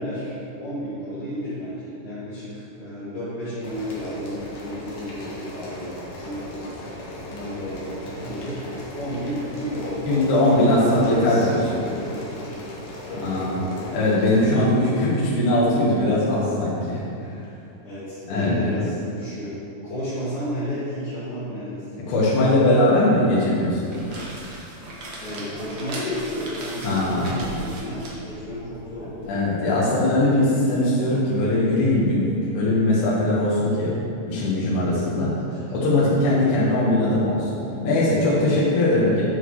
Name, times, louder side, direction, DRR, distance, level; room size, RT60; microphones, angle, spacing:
voice 1, 0.0-6.0 6.2-6.5 7.3-8.6 8.9-10.3 10.6-12.6 13.0-14.0 14.4-15.1 17.8-19.5 19.8-21.8 25.2-29.3 35.5-35.7, equal, 40° left, -15 dB, 3.0 m, -32 dB
sound 1, 3.6-14.5, left 1 dB, 55° left, 2.9 m, -37 dB
voice 2, 10.1-11.6 13.2-13.6 13.9-17.3 18.3-18.7 22.1-24.3 26.8-27.4 29.3-33.9 34.3-35.3 35.7-37.5 37.8-39.2, left 1 dB, 85° left, -8 dB, 3.8 m, -20 dB
sound 2, 23.7-29.3, right 1 dB, 80° right, 1.2 m, -38 dB
10.5 x 6.3 x 4.8 m, 2.6 s
omnidirectional pair, 4.7 m